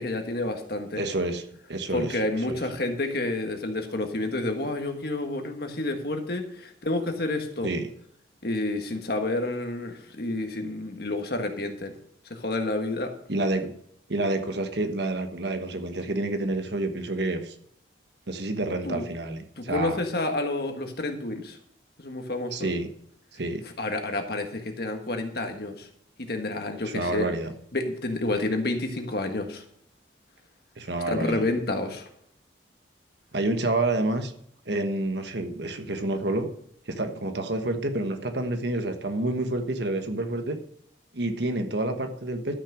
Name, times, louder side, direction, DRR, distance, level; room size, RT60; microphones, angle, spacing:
voice 1, 0.0-1.0 1.9-7.7 8.4-11.9 12.3-13.1 18.8-19.0 19.6-21.6 22.0-22.7 23.8-25.9 26.2-27.3 27.7-29.6 31.1-32.1, left 2 dB, 55° left, 5 dB, 1.5 m, -29 dB
voice 2, 1.0-1.4 1.7-2.2 2.5-2.6 7.6-7.9 13.3-13.7 14.1-17.5 18.3-20.0 22.5-22.9 23.3-23.6 26.9-27.5 30.8-31.4 33.3-34.3 34.7-36.5 36.9-40.6 41.1-42.6, right 2 dB, 65° right, 7 dB, 1.3 m, -28 dB
12.5 x 5.9 x 6.2 m, 0.68 s
head